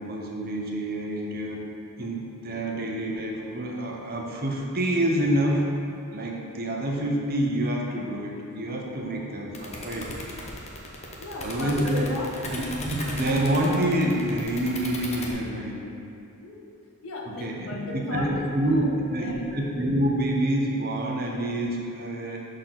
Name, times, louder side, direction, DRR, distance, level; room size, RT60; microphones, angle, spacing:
voice 1, 0.0-1.7 2.0-5.7 6.1-10.1 11.4-12.1 12.5-15.8 17.4-17.6 17.9-18.8 19.1-22.4, right 1 dB, 45° right, -1 dB, 0.8 m, -27 dB
sound 1, 9.5-15.3, left 2 dB, 30° left, 0.8 m, -36 dB
voice 2, 11.2-12.6 16.4-16.7 17.0-19.5, left 2 dB, 70° left, -1 dB, 0.9 m, -37 dB
6.6 x 3.9 x 5.8 m, 2.6 s
head